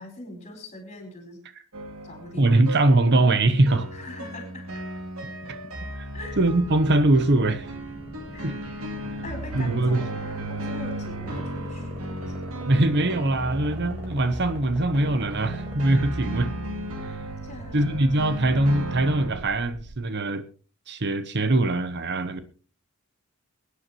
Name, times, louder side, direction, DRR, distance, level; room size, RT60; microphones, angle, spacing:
voice 1, 0.0-1.4 2.0-2.6 3.9-4.8 6.1-6.4 8.3-8.6 9.2-12.3 17.4-18.0, left 2 dB, 35° left, 4 dB, 4.4 m, -42 dB
sound 1, 1.7-19.4, right 1 dB, 80° right, 2.4 m, -35 dB
voice 2, 2.3-3.9 6.0-6.1 6.4-7.7 8.4-8.6 9.5-10.0 12.7-16.5 17.7-20.4 20.9-22.4, right 2 dB, 55° right, 12 dB, 0.9 m, -22 dB
sound 2, 6.3-20.0, equal, 10° right, 4.0 m, -44 dB
23.0 x 9.7 x 3.0 m, 0.38 s
head